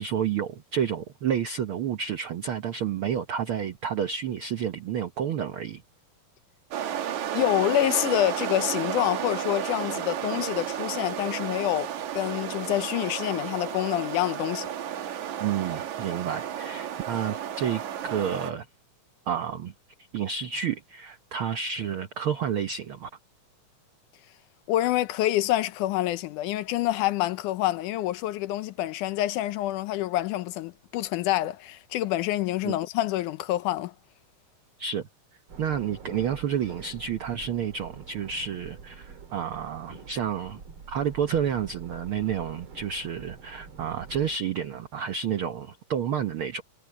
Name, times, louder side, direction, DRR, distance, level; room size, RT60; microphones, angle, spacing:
voice 1, 0.0-5.8 15.4-18.7 19.3-19.7 20.1-23.1 32.6-32.7 34.8-35.1 35.6-40.6 40.9-46.6, right 8 dB, 85° right, 1.1 m, -30 dB
sound 1, 6.7-18.5, right 10 dB, 65° right, 2.7 m, -32 dB
voice 2, 7.3-14.7 24.7-33.9, left 14 dB, 75° left, 2.1 m, -27 dB
sound 2, 35.5-44.4, right 5 dB, 45° right, 2.5 m, -45 dB
omnidirectional pair, 3.8 m